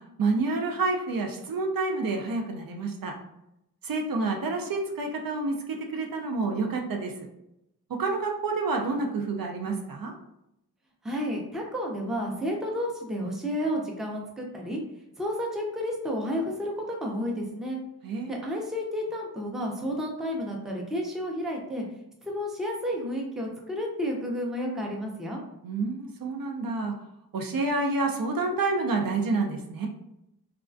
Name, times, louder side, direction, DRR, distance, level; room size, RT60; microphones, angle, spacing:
voice 1, 0.2-3.1 3.8-7.1 8.0-10.1 18.0-18.4 25.6-26.9 27.3-29.9, right 3 dB, 60° right, 2 dB, 0.5 m, -28 dB
voice 2, 11.0-14.8 15.2-17.8 18.3-21.8 22.2-25.4, equal, ahead, -1 dB, 0.5 m, -31 dB
2.3 x 2.2 x 2.4 m, 0.83 s
wide cardioid pair, 75°, 38 cm